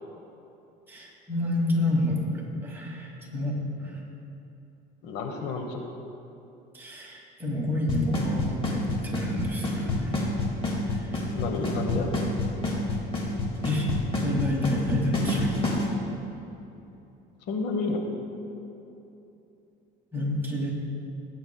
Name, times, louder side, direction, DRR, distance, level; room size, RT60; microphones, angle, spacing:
voice 1, 0.9-4.0 6.7-10.2 10.9-11.2 11.5-11.8 13.6-13.9 14.2-15.6 20.1-20.7, left 1 dB, 10° right, -3 dB, 2.3 m, -29 dB
voice 2, 5.0-5.9 11.3-12.1 17.5-18.0, left 3 dB, 70° left, 4 dB, 1.2 m, -30 dB
Drum kit / Snare drum / Bass drum, 7.9-15.8, left 2 dB, 30° left, 2.2 m, -27 dB
17.0 x 8.7 x 2.3 m, 2.9 s
cardioid pair, 110°, 20 cm